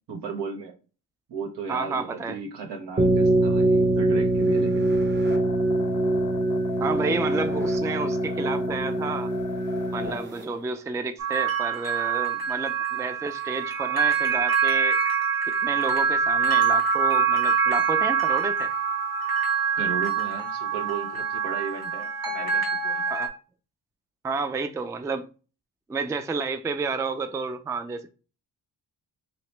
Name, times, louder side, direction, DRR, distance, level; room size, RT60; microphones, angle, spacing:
voice 1, 0.1-0.7 1.3-4.9 19.8-23.1, right 5 dB, 75° right, 1.1 m, -35 dB
voice 2, 1.7-2.4 6.8-9.3 9.9-15.0 15.5-18.7 23.1-23.3 24.2-25.3 25.9-28.1, right 4 dB, 10° right, 0.3 m, -30 dB
sound 1, 3.0-10.4, right 1 dB, 25° right, 0.9 m, -23 dB
sound 2, 5.2-10.3, left 9 dB, 70° left, 0.6 m, -39 dB
sound 3, 11.2-23.3, right 6 dB, 60° right, 1.4 m, -25 dB
2.9 x 2.9 x 3.2 m
cardioid pair, 80°, 40 cm